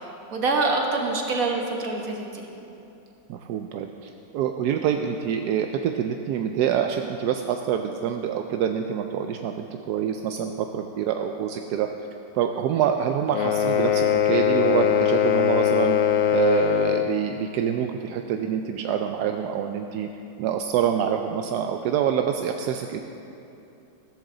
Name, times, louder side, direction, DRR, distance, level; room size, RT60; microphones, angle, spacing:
voice 1, 0.3-2.4, right 3 dB, 50° right, 1 dB, 1.7 m, -25 dB
voice 2, 3.3-11.9 12.3-16.0 16.3-20.1 20.4-23.0, right 8 dB, 70° right, 5 dB, 1.0 m, -26 dB
sound 1, 13.3-17.2, left 9 dB, 65° left, 1.0 m, -21 dB
15.0 x 13.5 x 3.8 m, 2.8 s
omnidirectional pair, 2.1 m